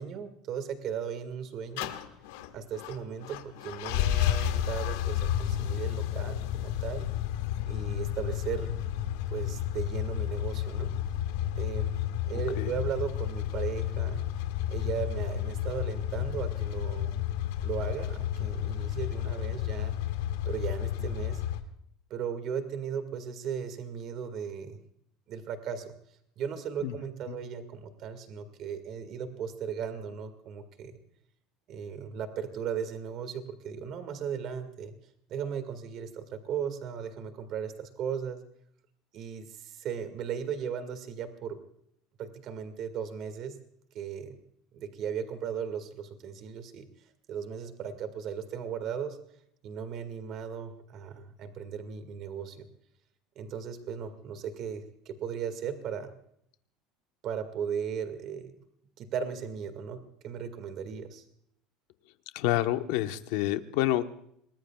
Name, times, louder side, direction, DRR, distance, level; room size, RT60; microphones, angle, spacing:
voice 1, 0.0-1.9 2.5-7.1 7.7-8.7 9.3-10.9 11.6-11.9 12.3-14.2 14.7-17.1 17.6-20.0 20.5-21.4 22.1-24.8 25.3-25.9 26.4-30.9 31.7-34.9 35.3-38.4 39.1-41.6 42.2-43.6 43.9-44.4 44.7-46.9 47.3-49.2 49.6-52.7 53.4-56.1 57.2-58.6 59.0-61.2, right 7 dB, 40° right, 10 dB, 2.0 m, -36 dB
sound 1, 1.8-21.6, left 11 dB, 90° left, 1.7 m, -31 dB
voice 2, 62.3-64.0, left 14 dB, 65° left, 8 dB, 1.1 m, -28 dB
27.5 x 20.0 x 2.4 m, 0.70 s
cardioid pair, 170°, 0 cm